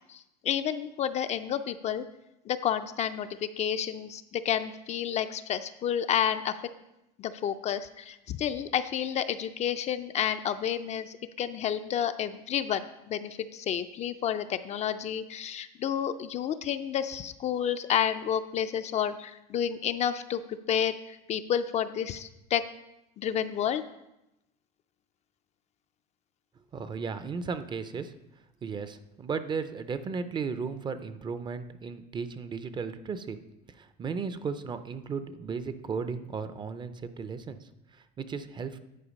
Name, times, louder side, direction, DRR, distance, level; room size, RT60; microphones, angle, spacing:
voice 1, 0.1-2.0 2.5-6.6 7.2-22.6 23.2-23.8, left 9 dB, 35° left, 10 dB, 0.4 m, -30 dB
voice 2, 26.7-28.1 28.6-33.4 33.8-37.6 38.2-38.8, right 5 dB, 25° right, 11 dB, 0.5 m, -35 dB
10.0 x 4.6 x 5.2 m, 0.88 s
cardioid pair, 135°, 19 cm